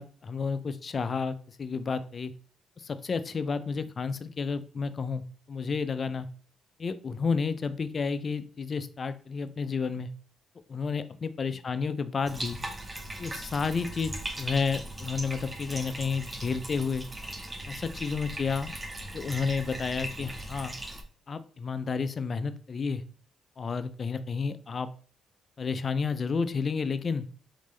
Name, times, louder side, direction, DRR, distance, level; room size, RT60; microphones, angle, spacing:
voice 1, 0.0-2.3 2.8-6.3 6.8-10.1 10.7-12.6 13.2-17.0 17.7-18.7 19.1-20.7 21.3-23.0 23.6-24.9 25.6-27.3, left 5 dB, 40° left, 12 dB, 0.4 m, -31 dB
Bathtub (filling or washing), 12.2-21.0, right 1 dB, 20° right, 0.6 m, -39 dB
4.0 x 3.2 x 3.5 m, 0.42 s
cardioid pair, 90°, 0 cm